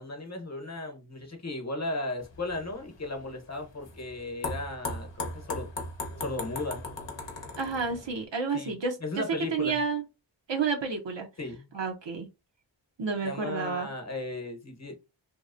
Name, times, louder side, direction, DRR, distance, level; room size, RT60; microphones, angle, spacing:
voice 1, 0.0-5.7 6.2-6.8 8.5-8.7 9.0-9.8 11.4-11.7 13.2-15.0, left 2 dB, 35° left, 0.9 m, -35 dB
sound 1, 2.2-8.2, left 2 dB, 75° left, 0.8 m, -38 dB
voice 2, 7.6-8.9 9.5-10.0 10.5-11.3 11.7-12.3 13.0-13.9, right 5 dB, 75° right, 0.7 m, -30 dB
2.8 x 2.0 x 2.4 m
wide cardioid pair, 45°, 44 cm